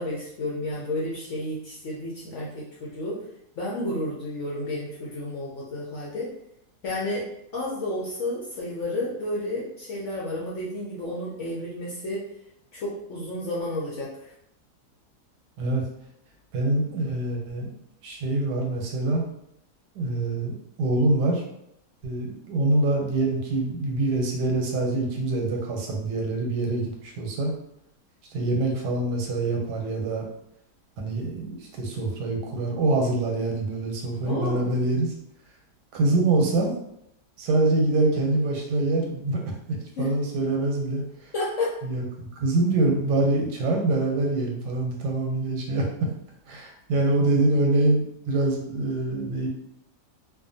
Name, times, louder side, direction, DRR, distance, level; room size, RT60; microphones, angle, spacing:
voice 1, 0.0-3.2 3.6-6.3 6.8-7.3 7.5-12.2 12.7-14.3 34.2-34.7 40.0-40.1 41.3-41.8, left 1 dB, 65° left, -5 dB, 0.7 m, -31 dB
voice 2, 16.5-17.7 18.0-19.2 19.9-20.5 20.8-21.4 22.0-27.5 28.3-30.2 31.0-35.1 35.9-36.7 37.4-39.4 40.0-41.3 41.8-45.8 46.5-49.5, right 2 dB, 85° right, 1 dB, 1.3 m, -25 dB
2.5 x 2.4 x 2.6 m, 0.77 s
omnidirectional pair, 1.7 m